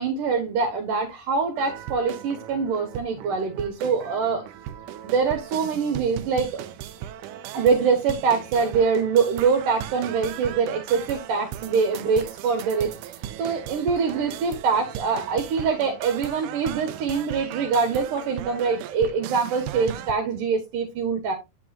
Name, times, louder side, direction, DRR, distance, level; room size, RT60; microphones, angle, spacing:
voice 1, 0.0-4.4 5.0-6.5 7.5-21.4, right 5 dB, 65° right, 2.5 m, -24 dB
sound 1, 1.6-20.1, right 11 dB, 80° right, 1.8 m, -37 dB
8.3 x 7.9 x 2.5 m
omnidirectional pair, 4.4 m